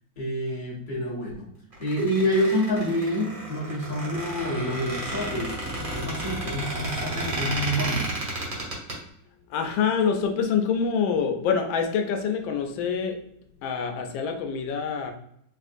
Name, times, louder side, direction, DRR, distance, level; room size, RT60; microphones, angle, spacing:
voice 1, 0.2-1.5 1.8-8.1, equal, 30° left, -5 dB, 1.1 m, -27 dB
Squeak, 1.7-8.9, right 1 dB, 35° right, 1.0 m, -32 dB
voice 2, 9.5-13.2 13.6-15.1, left 6 dB, 90° left, 4 dB, 1.3 m, -26 dB
4.5 x 2.4 x 2.5 m, 0.71 s
omnidirectional pair, 2.0 m